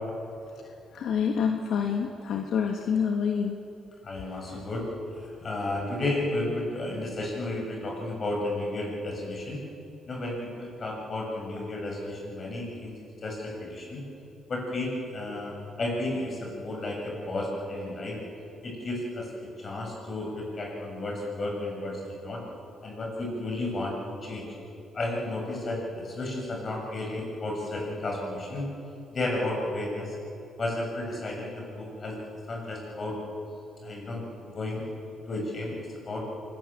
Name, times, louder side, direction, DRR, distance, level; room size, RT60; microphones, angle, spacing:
voice 1, 0.5-3.6 4.5-4.6 6.8-6.9, left 6 dB, 70° left, 3 dB, 1.6 m, -28 dB
voice 2, 4.0-4.9 5.2-9.6 10.1-12.9 13.2-14.0 14.5-18.2 18.6-22.4 22.8-24.5 24.9-28.7 29.1-30.2 30.6-32.2 32.5-33.2 33.8-34.8 35.3-36.2, left 2 dB, 40° left, 0 dB, 7.8 m, -33 dB
26.0 x 20.0 x 7.7 m, 2.8 s
cardioid pair, 90°, 0 cm